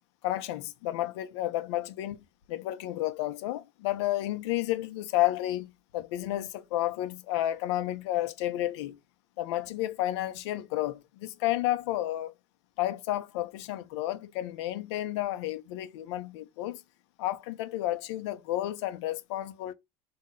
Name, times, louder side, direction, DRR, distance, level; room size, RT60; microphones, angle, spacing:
voice 1, 0.2-2.2 2.5-9.0 9.4-12.3 12.8-16.8 17.2-19.7, left 15 dB, 80° left, 0.8 m, -31 dB
4.2 x 3.0 x 3.8 m
supercardioid pair, 90°, 14 cm